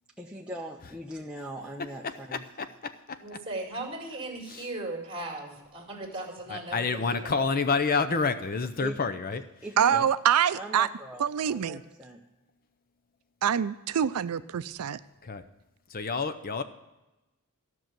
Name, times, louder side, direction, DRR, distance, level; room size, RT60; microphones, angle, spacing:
voice 1, 0.2-2.4 8.8-9.0 9.6-10.0 10.5-12.2, right 1 dB, 5° right, -1 dB, 0.7 m, -40 dB
voice 2, 2.0-2.7 4.5-4.7 6.5-9.4 9.9-10.1 15.2-15.4 15.9-16.6, left 4 dB, 40° left, 11 dB, 0.6 m, -29 dB
voice 3, 3.2-7.4, right 2 dB, 25° right, 2 dB, 2.4 m, -37 dB
voice 4, 9.8-10.9 11.2-11.8 13.4-15.0, right 8 dB, 85° right, 14 dB, 0.4 m, -25 dB
13.0 x 6.2 x 9.0 m, 1.0 s
head